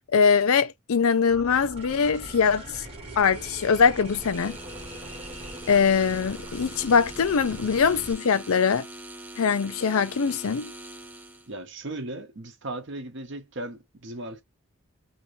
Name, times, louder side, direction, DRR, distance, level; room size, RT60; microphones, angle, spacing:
voice 1, 0.1-2.8 3.2-4.6 5.7-8.8 9.4-10.7, left 6 dB, 75° left, 0.5 m, -22 dB
sound 1, 1.3-8.1, right 1 dB, 25° right, 1.0 m, -41 dB
sound 2, 4.0-11.5, right 1 dB, 10° right, 0.3 m, -43 dB
voice 2, 11.5-14.4, right 2 dB, 55° right, 0.8 m, -37 dB
2.9 x 2.6 x 3.1 m
head